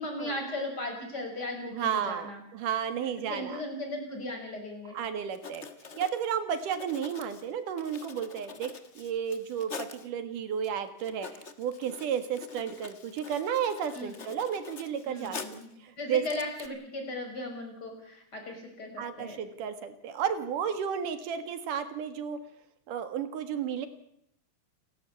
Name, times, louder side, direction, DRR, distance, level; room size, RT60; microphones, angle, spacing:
voice 1, 0.0-2.4 3.0-5.0 13.9-14.2 15.1-15.7 16.0-19.4, left 1 dB, 30° left, 3 dB, 6.3 m, -37 dB
voice 2, 1.7-3.6 4.9-5.7 6.0-16.2 19.0-22.4 22.9-23.9, right 8 dB, 90° right, 10 dB, 3.3 m, -33 dB
Writing, 5.3-10.1 10.6-10.7 11.0-15.7 16.1-16.7, left 5 dB, 50° left, 0.8 m, -45 dB
29.0 x 13.0 x 8.4 m, 0.73 s
omnidirectional pair, 3.6 m